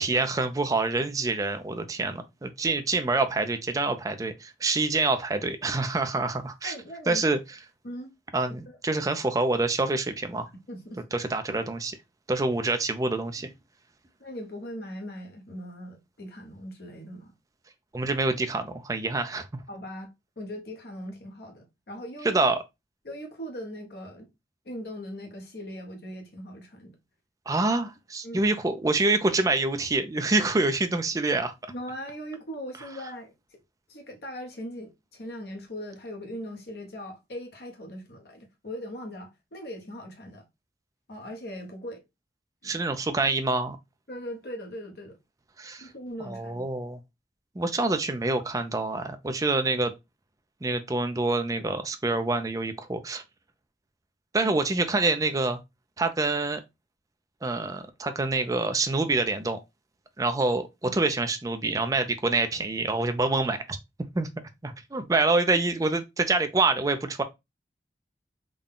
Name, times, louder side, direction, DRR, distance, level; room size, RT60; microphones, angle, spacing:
voice 1, 0.0-6.7 7.1-7.4 8.3-10.5 11.1-12.0 12.3-13.5 17.9-19.5 22.2-22.6 27.5-31.5 42.6-43.8 45.6-45.9 46.3-47.0 47.6-49.9 50.6-53.2 54.3-55.6 56.0-56.6 57.4-59.6 60.2-63.8 64.1-64.3 64.6-67.2, right 3 dB, 20° right, 0.4 m, -26 dB
voice 2, 6.6-7.2 7.8-8.1 8.7-8.8 10.7-11.0 14.2-17.3 19.7-22.4 23.0-24.3 24.6-27.0 28.2-28.4 31.7-33.6 33.9-40.5 41.1-42.0 42.6-42.8 44.1-45.2 45.8-46.6 54.4-54.5 60.8-61.0, equal, 60° left, 1.0 m, -40 dB
3.7 x 2.2 x 3.5 m
head